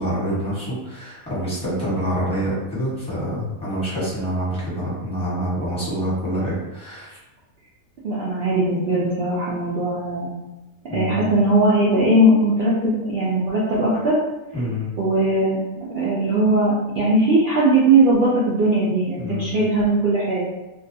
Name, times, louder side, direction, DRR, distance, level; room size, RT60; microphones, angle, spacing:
voice 1, 0.0-7.2 10.9-11.3 14.5-14.9 19.2-19.7, equal, 5° left, -10 dB, 0.9 m, -26 dB
voice 2, 8.0-10.3 10.9-14.2 15.0-20.5, right 1 dB, 75° right, -7 dB, 0.5 m, -19 dB
2.4 x 2.2 x 2.6 m, 1.0 s
omnidirectional pair, 1.6 m